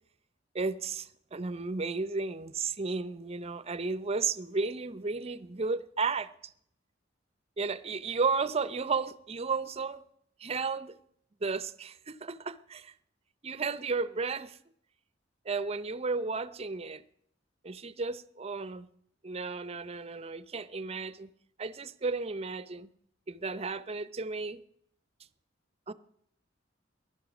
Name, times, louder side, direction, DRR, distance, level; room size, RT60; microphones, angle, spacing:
voice 1, 0.5-6.5 7.6-10.0 10.4-10.9 11.4-12.9 13.4-14.6 15.4-17.0 17.6-18.9 19.2-21.3 21.6-22.9 23.3-24.6 25.9-26.0, right 4 dB, 35° right, 0.6 m, -33 dB
15.5 x 11.5 x 6.1 m
head